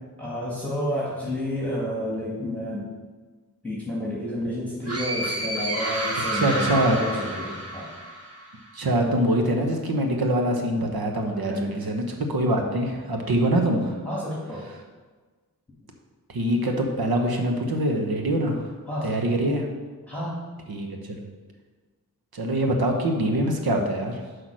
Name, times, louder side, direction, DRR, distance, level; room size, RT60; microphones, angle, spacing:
voice 1, 0.2-2.9 3.6-7.9 11.3-11.8 14.0-14.7 18.9-19.2 20.1-20.4, left 1 dB, 5° left, -7 dB, 2.1 m, -30 dB
sound 1, 4.9-8.5, right 1 dB, 40° right, 1.4 m, -30 dB
voice 2, 6.3-7.0 8.7-14.0 16.3-18.7 19.0-19.7 20.7-21.2 22.3-24.2, right 1 dB, 75° right, 3 dB, 1.1 m, -24 dB
5.9 x 4.9 x 6.3 m, 1.4 s
cardioid pair, 55°, 37 cm